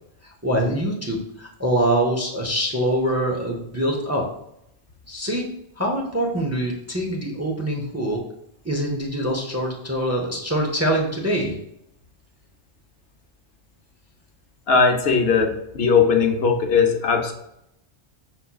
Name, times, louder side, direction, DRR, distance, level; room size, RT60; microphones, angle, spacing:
voice 1, 0.2-4.2 5.1-5.5 5.8-8.2 8.6-11.5, right 1 dB, 20° right, -1 dB, 0.6 m, -24 dB
voice 2, 14.7-17.3, left 5 dB, 65° left, 4 dB, 1.0 m, -19 dB
5.5 x 4.2 x 2.3 m, 0.78 s
omnidirectional pair, 1.1 m